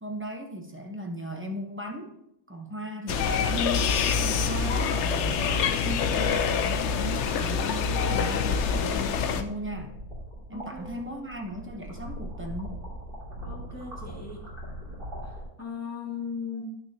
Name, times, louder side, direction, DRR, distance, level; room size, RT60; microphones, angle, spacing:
voice 1, 0.0-2.2 2.5-10.0 10.5-12.8, equal, 15° right, 3 dB, 0.4 m, -37 dB
sound 1, 3.1-9.4, left 6 dB, 65° left, 0.7 m, -26 dB
sound 2, 9.3-15.4, equal, 35° right, 2.6 m, -40 dB
voice 2, 10.5-11.2 13.4-14.4 15.2-16.7, left 5 dB, 10° left, -3 dB, 1.5 m, -38 dB
11.0 x 6.4 x 2.7 m, 0.79 s
omnidirectional pair, 1.6 m